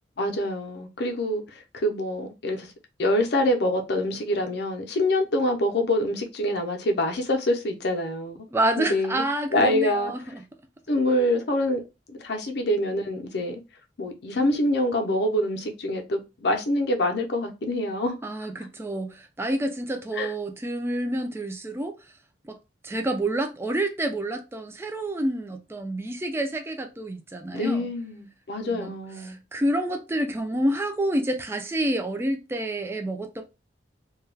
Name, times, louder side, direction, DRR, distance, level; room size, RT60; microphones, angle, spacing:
voice 1, 0.2-2.7 3.0-8.5 8.8-9.2 9.5-10.1 10.9-11.8 12.1-13.6 14.0-18.2 20.1-20.3 27.5-29.4, left 1 dB, 60° left, 0.6 m, -25 dB
voice 2, 8.5-10.4 18.2-22.0 22.4-22.6 22.8-27.9 28.6-28.9 29.2-33.4, right 1 dB, 15° right, 0.3 m, -28 dB
2.3 x 2.2 x 3.2 m
head